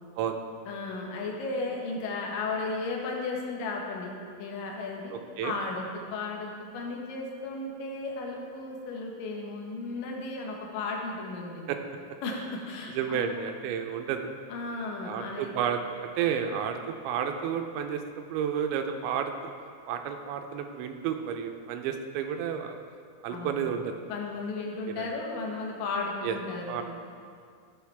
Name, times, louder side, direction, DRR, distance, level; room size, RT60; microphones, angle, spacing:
voice 1, 0.7-4.1 4.4-5.1 5.4-11.7 12.2-13.3 14.5-15.5 23.3-23.7 24.1-26.8, left 3 dB, 65° left, 0 dB, 2.3 m, -34 dB
voice 2, 12.9-14.2 15.0-16.8 17.0-18.0 18.3-19.3 19.9-22.8 23.2-23.9 25.0-25.1 26.2-26.4 26.7-26.8, right 8 dB, 85° right, 5 dB, 2.9 m, -31 dB
14.5 x 8.1 x 3.5 m, 2.2 s
omnidirectional pair, 5.3 m